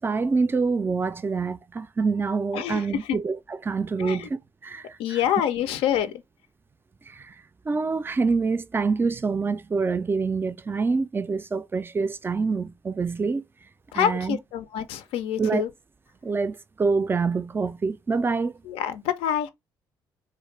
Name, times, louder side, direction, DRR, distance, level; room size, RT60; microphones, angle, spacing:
voice 1, 0.0-5.2 7.1-7.3 7.7-13.4 13.9-14.4 15.4-15.6 16.2-18.5, right 4 dB, 20° right, 0.3 m, -26 dB
voice 2, 2.5-3.2 4.0-4.3 5.0-6.2 13.9-15.7 18.7-19.5, left 10 dB, 75° left, 0.4 m, -26 dB
2.3 x 2.1 x 3.1 m
supercardioid pair, 65°, 10 cm